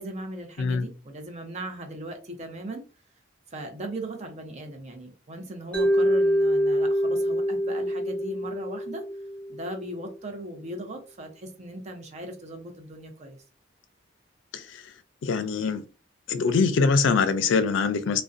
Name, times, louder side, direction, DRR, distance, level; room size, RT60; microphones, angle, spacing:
voice 1, 0.0-2.8 3.5-9.0 9.5-13.4, right 1 dB, 35° right, 0.6 m, -38 dB
Mallet percussion, 5.7-9.8, equal, 5° left, 0.5 m, -25 dB
voice 2, 15.2-15.8 16.3-18.2, left 4 dB, 85° left, 0.4 m, -23 dB
2.4 x 2.1 x 2.5 m
head